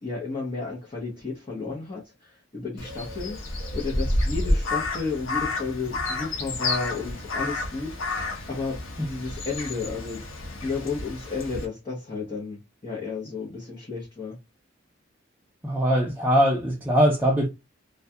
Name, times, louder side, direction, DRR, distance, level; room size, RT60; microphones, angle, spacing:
voice 1, 0.0-3.4 3.7-8.1 8.5-10.3 10.6-14.4, left 4 dB, 25° left, 0.7 m, -32 dB
Crow, 2.8-11.6, left 2 dB, 85° left, 0.7 m, -30 dB
voice 2, 15.6-17.5, equal, 10° right, 0.4 m, -21 dB
2.3 x 2.2 x 2.6 m
head